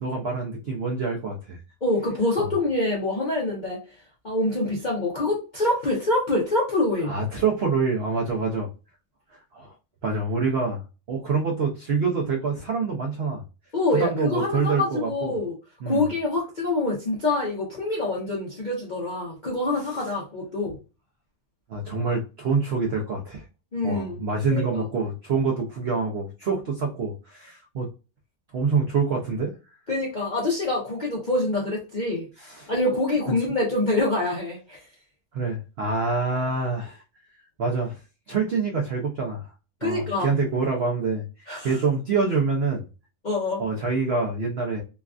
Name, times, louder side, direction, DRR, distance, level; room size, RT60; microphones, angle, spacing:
voice 1, 0.0-1.6 2.4-2.5 7.1-8.7 9.3-9.7 10.0-13.4 13.9-15.3 15.8-16.1 21.7-23.4 23.8-27.9 28.5-29.5 32.4-32.7 35.3-37.0 37.6-38.0 38.3-39.5 39.8-41.2 41.6-42.8 43.6-44.8, right 4 dB, 80° right, 0 dB, 0.5 m, -26 dB
voice 2, 1.8-4.0 4.2-7.1 13.7-15.5 15.9-20.8 23.7-24.2 24.5-24.8 29.9-32.3 32.7-34.9 39.8-40.3 41.5-41.8 43.2-43.6, left 2 dB, 55° left, -4 dB, 0.5 m, -25 dB
3.2 x 2.3 x 2.3 m, 0.32 s
omnidirectional pair, 1.8 m